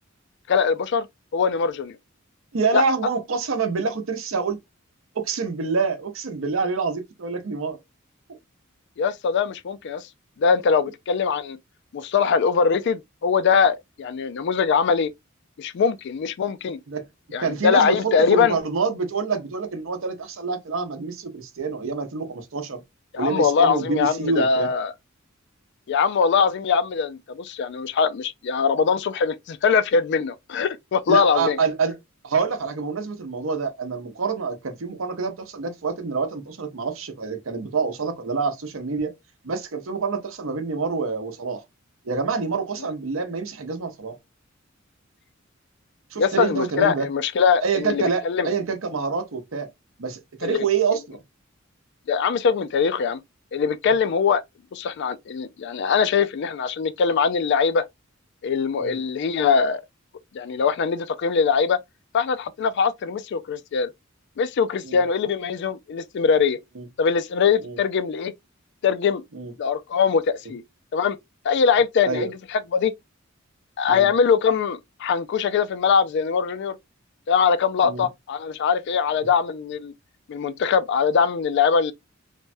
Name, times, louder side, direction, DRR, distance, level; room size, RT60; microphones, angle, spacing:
voice 1, 0.5-1.1 1.3-2.0 2.7-2.8 9.0-10.0 10.4-11.6 11.9-15.1 15.6-16.8 17.3-18.6 23.1-24.9 25.9-31.6 46.2-48.5 50.4-50.6 52.1-53.2 53.5-54.4 54.7-57.9 58.4-59.8 60.3-61.8 62.1-63.9 64.4-66.6 67.0-68.3 68.8-69.2 69.6-70.6 70.9-71.2 71.4-72.9 73.8-76.8 77.3-79.9 80.3-81.9, left 6 dB, 60° left, 0.3 m, -22 dB
voice 2, 2.5-4.6 5.1-7.8 16.9-17.1 17.4-22.8 23.2-24.7 31.1-32.0 32.2-39.1 39.4-41.6 42.0-44.2 46.1-47.1 47.6-49.7 50.0-51.2 58.8-59.0 64.8-65.0 66.8-66.9 67.6-67.8 69.3-69.5 72.1-72.3 73.9-74.1 77.8-78.1, right 5 dB, 75° right, 0.7 m, -26 dB
3.3 x 2.1 x 2.5 m
head